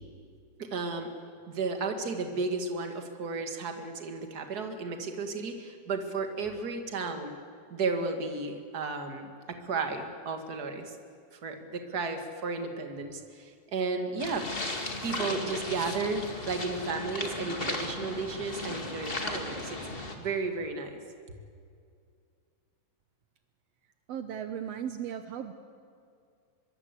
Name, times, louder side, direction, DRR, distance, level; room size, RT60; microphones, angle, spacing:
voice 1, 0.6-1.1 1.5-7.3 7.7-11.0 11.3-14.5 15.0-21.0, right 4 dB, 35° right, 5 dB, 1.8 m, -33 dB
sound 1, 14.2-20.1, left 2 dB, 25° left, 1.4 m, -36 dB
voice 2, 24.1-25.5, right 9 dB, 80° right, 8 dB, 1.4 m, -36 dB
24.5 x 23.0 x 8.3 m, 2.3 s
omnidirectional pair, 4.2 m